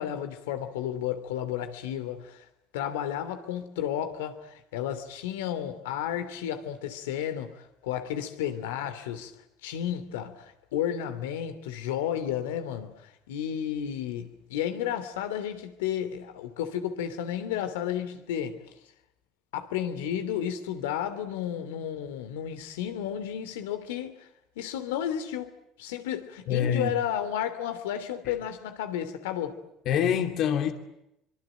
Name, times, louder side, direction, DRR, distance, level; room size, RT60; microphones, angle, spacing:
voice 1, 0.0-2.4 2.7-9.3 9.6-18.6 19.5-24.3 24.6-29.6, left 10 dB, 90° left, 2.9 m, -32 dB
voice 2, 26.5-26.9 28.2-28.3 29.9-30.7, left 8 dB, 60° left, 2.6 m, -25 dB
25.0 x 24.5 x 9.2 m
supercardioid pair, 85°, 0 cm